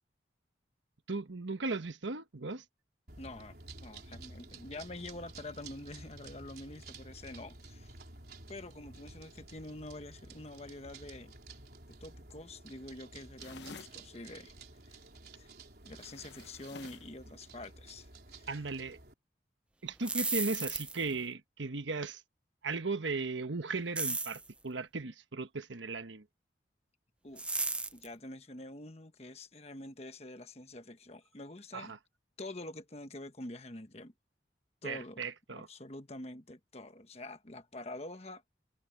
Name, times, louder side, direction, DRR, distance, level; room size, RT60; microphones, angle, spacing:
voice 1, 1.1-2.6 18.5-19.0 19.8-22.2 22.6-26.2 31.7-32.0 34.8-35.7, right 3 dB, 90° right, 1.2 m, -37 dB
sound 1, 3.1-19.1, right 3 dB, 55° right, 4.6 m, -52 dB
voice 2, 3.2-7.9 8.5-11.3 12.0-14.5 14.9-15.0 15.3-15.5 15.8-18.5 27.2-27.4 27.9-31.9 32.4-34.1 34.8-35.3 35.5-38.4, left 2 dB, 35° left, 1.3 m, -46 dB
sound 2, 13.4-14.0 15.9-17.1, left 5 dB, 70° left, 0.9 m, -51 dB
sound 3, 19.9-21.2 24.0-24.5 27.4-28.1, right 3 dB, 5° right, 0.3 m, -34 dB
head